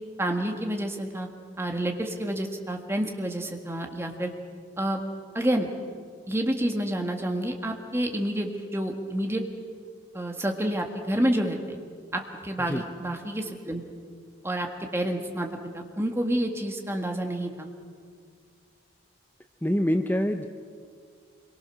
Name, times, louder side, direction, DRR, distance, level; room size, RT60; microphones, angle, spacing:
voice 1, 0.2-1.3 1.6-4.3 4.8-5.0 5.3-5.7 6.3-9.4 10.1-11.6 12.1-13.8 14.4-15.5 15.7-17.7, right 1 dB, 15° right, 3 dB, 1.7 m, -29 dB
voice 2, 19.6-20.5, equal, 10° left, 6 dB, 0.7 m, -25 dB
25.5 x 23.0 x 6.4 m, 2.1 s
head